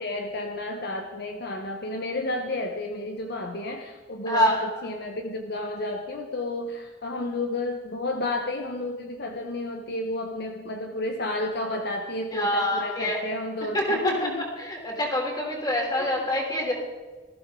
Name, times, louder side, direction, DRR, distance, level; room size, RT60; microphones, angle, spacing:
voice 1, 0.0-14.4 16.0-16.1, left 2 dB, 55° left, 4 dB, 1.0 m, -31 dB
voice 2, 4.3-4.6 12.3-13.2 13.7-16.7, left 1 dB, 20° left, 0 dB, 3.4 m, -26 dB
19.5 x 14.5 x 3.8 m, 1.3 s
head